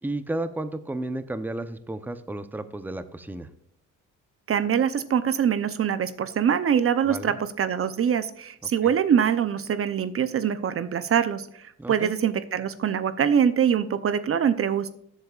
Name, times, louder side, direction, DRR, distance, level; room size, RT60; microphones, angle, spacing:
voice 1, 0.0-3.5 7.0-7.4 8.8-8.9 11.8-12.1, right 2 dB, 5° right, 11 dB, 0.8 m, -33 dB
voice 2, 4.5-14.9, right 8 dB, 45° right, 13 dB, 0.7 m, -24 dB
14.0 x 8.1 x 2.4 m, 0.68 s
cardioid pair, 90°, 30 cm